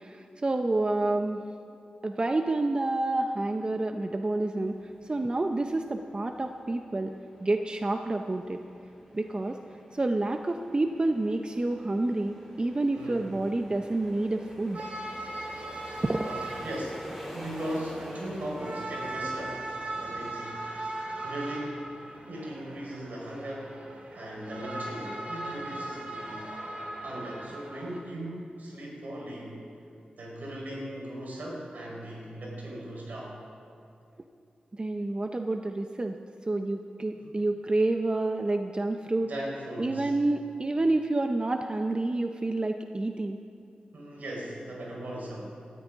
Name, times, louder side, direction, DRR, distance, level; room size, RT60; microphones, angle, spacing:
voice 1, 0.0-1.5 2.0-4.8 5.0-7.1 7.4-8.6 9.1-9.6 9.9-14.8 16.0-16.2 34.8-36.2 36.5-39.3 39.8-43.4, right 2 dB, 35° right, 5 dB, 0.6 m, -28 dB
sound 1, 4.6-20.4, equal, 10° right, 3.7 m, -47 dB
voice 2, 12.9-13.3 16.2-19.7 20.0-20.7 21.2-21.9 22.3-23.8 24.1-26.5 27.0-29.6 30.1-33.4 37.1-37.4 39.2-40.1 43.9-45.5, right 1 dB, 80° right, -3 dB, 4.2 m, -38 dB
sound 2, 14.7-28.0, right 2 dB, 55° right, 2.7 m, -39 dB
19.5 x 13.5 x 3.6 m, 2.5 s
cardioid pair, 55°, 3 cm